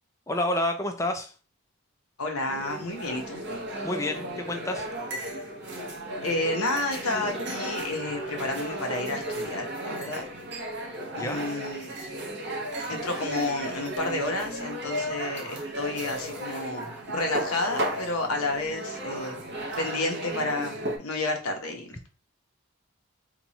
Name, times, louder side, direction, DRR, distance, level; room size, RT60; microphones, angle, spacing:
voice 1, 0.3-1.3 3.8-4.9 11.2-11.4, left 1 dB, 15° left, 6 dB, 0.4 m, -29 dB
voice 2, 2.2-3.4 6.2-10.3 11.1-11.9 12.9-22.1, left 2 dB, 75° left, 3 dB, 0.8 m, -31 dB
sound 1, 2.5-21.0, right 1 dB, 50° right, 0.8 m, -34 dB
3.0 x 2.3 x 4.0 m, 0.36 s
head